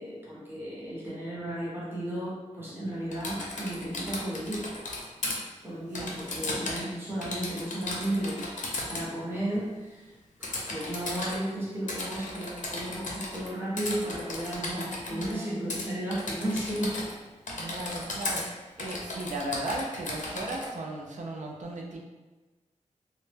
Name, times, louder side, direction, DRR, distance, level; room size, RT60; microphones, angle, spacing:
voice 1, 0.0-4.7 5.6-10.1 10.4-17.0 17.6-17.7, right 1 dB, 15° right, -8 dB, 0.9 m, -34 dB
Typing, 3.1-5.4 6.0-6.9 7.2-9.1 10.4-11.4 11.9-13.5 13.8-15.3 15.7-15.9 16.1-17.2 17.5-18.4 18.8-20.7, left 2 dB, 80° left, 0.5 m, -35 dB
voice 2, 6.5-6.8 14.6-15.5 17.5-22.0, right 1 dB, 70° right, 0 dB, 0.4 m, -37 dB
2.0 x 2.0 x 3.3 m, 1.2 s
wide cardioid pair, 95°, 13 cm